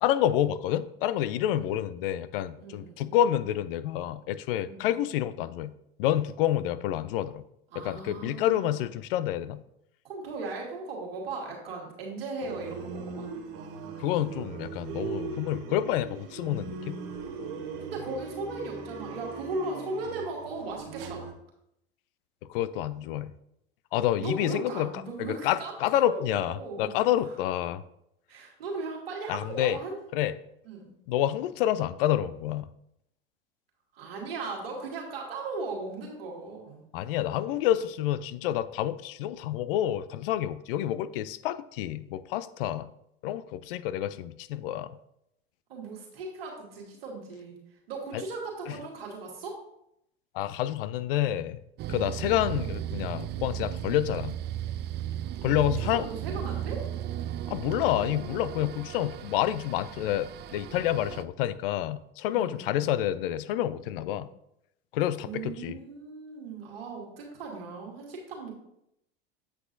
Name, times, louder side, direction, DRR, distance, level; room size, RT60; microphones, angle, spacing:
voice 1, 0.0-5.7 6.0-7.4 7.8-9.6 14.0-17.0 22.5-23.3 23.9-24.9 25.2-27.8 29.3-29.8 30.1-30.3 31.1-32.7 36.9-42.9 43.2-45.0 50.3-51.6 51.9-54.4 55.4-56.1 57.5-64.3 64.9-65.8, left 12 dB, 70° left, 15 dB, 0.5 m, -28 dB
voice 2, 2.6-3.2 4.6-5.0 5.4-5.5 7.7-8.8 10.0-13.3 17.8-21.3 24.2-26.9 28.3-30.0 30.6-30.9 33.9-36.8 45.7-47.6 47.9-49.6 55.2-55.4 55.9-56.9 62.3-62.9 63.8-64.2 65.2-68.5, right 3 dB, 85° right, -2 dB, 1.9 m, -38 dB
sound 1, 12.4-21.3, right 5 dB, 60° right, 1.0 m, -39 dB
sound 2, 51.8-61.2, right 12 dB, 35° right, 0.4 m, -35 dB
7.9 x 6.2 x 2.6 m, 0.79 s
hypercardioid pair, 90°, 29 cm